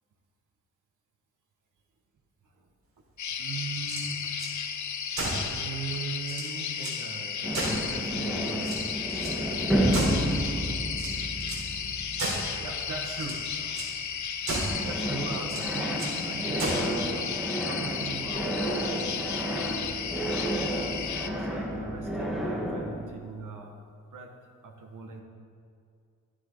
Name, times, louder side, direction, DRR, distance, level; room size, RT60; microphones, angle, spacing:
sound 1, 3.2-21.3, left 7 dB, 65° left, 0.8 m, -34 dB
voice 1, 3.4-4.3 4.8-4.9 5.4-10.9 12.6-13.8 14.8-17.3 17.6-18.5 18.8-19.7 20.7-23.7 24.1-24.4 24.6-25.2, right 4 dB, 75° right, 1 dB, 2.1 m, -40 dB
sound 2, 3.7-4.5 5.1-5.5 5.9-6.0 6.2-7.0 7.5-8.2 8.6-9.4 9.9-10.5 10.9-11.7 12.2-12.6 13.1-13.4 13.7-13.9 14.4-14.9 15.4-16.2 16.6-17.0, right 2 dB, 55° right, 4.1 m, -34 dB
sound 3, 7.4-14.4 14.7-23.0, right 1 dB, ahead, 1.9 m, -31 dB
15.5 x 13.5 x 4.1 m, 2.3 s
wide cardioid pair, 135°, 32 cm